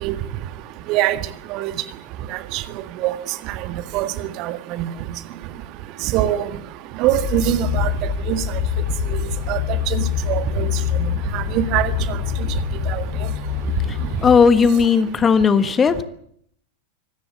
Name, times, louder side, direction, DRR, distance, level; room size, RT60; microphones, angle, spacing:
voice 1, 4.4-4.9 6.1-6.4 7.0-7.9 8.3-8.4 9.5-9.6 9.9-10.0 10.3-10.7 11.3-11.9 12.9-13.0, right 14 dB, 40° right, 11 dB, 1.6 m, -21 dB
sound 1, 7.1-14.5, left 9 dB, 55° left, 4.9 m, -25 dB
voice 2, 14.2-16.0, left 5 dB, 20° left, 12 dB, 1.4 m, -15 dB
25.0 x 17.5 x 7.3 m, 0.68 s
figure-of-eight pair, 90°, 0 cm